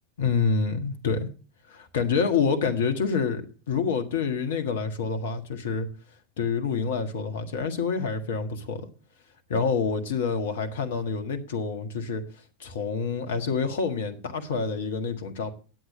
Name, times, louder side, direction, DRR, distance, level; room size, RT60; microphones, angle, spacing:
voice 1, 0.2-1.3 1.7-5.9 6.4-8.9 9.5-12.2 12.6-15.5, left 5 dB, 60° left, 1.6 m, -27 dB
10.5 x 8.2 x 6.4 m
figure-of-eight pair, 90°, 0 cm